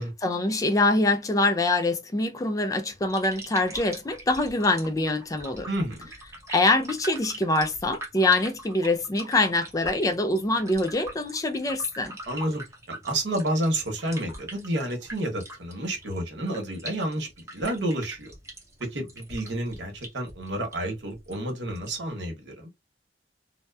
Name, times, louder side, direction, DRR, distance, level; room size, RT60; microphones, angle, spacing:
voice 1, 0.2-5.7 6.5-12.2, left 2 dB, 20° left, 0.3 m, -24 dB
sound 1, 2.9-22.1, right 2 dB, 15° right, 0.7 m, -43 dB
voice 2, 5.7-6.1 12.3-12.6 12.9-18.3 18.9-22.7, right 1 dB, 85° right, 1.0 m, -30 dB
2.8 x 2.0 x 2.2 m
head